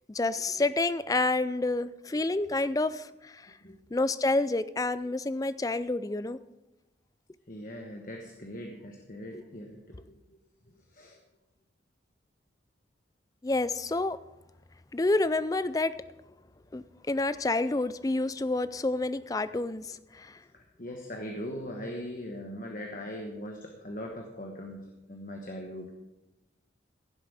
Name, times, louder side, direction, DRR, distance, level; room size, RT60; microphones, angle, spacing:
voice 1, 0.1-3.5 3.9-6.4 13.4-14.2 14.9-16.0 16.7-20.4, left 2 dB, 20° left, 15 dB, 0.4 m, -29 dB
voice 2, 7.5-10.4 10.7-11.2 20.5-25.9, equal, 45° left, 2 dB, 1.2 m, -40 dB
16.0 x 7.6 x 4.9 m, 0.98 s
head